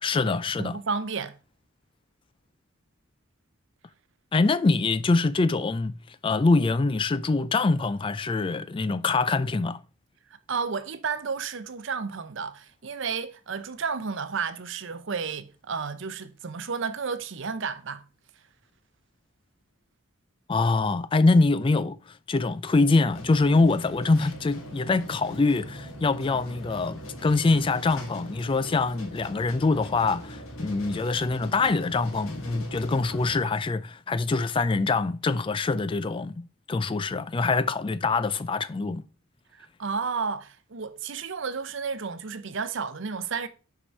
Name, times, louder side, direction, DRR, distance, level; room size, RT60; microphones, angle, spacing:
voice 1, 0.0-0.8 4.3-5.9 6.2-9.8 20.5-39.0, left 3 dB, 25° left, 0.3 m, -24 dB
voice 2, 0.6-1.4 10.5-18.0 39.5-43.5, right 5 dB, 60° right, 0.7 m, -32 dB
sound 1, 23.1-33.5, equal, 80° left, 1.9 m, -41 dB
5.9 x 4.8 x 5.3 m
head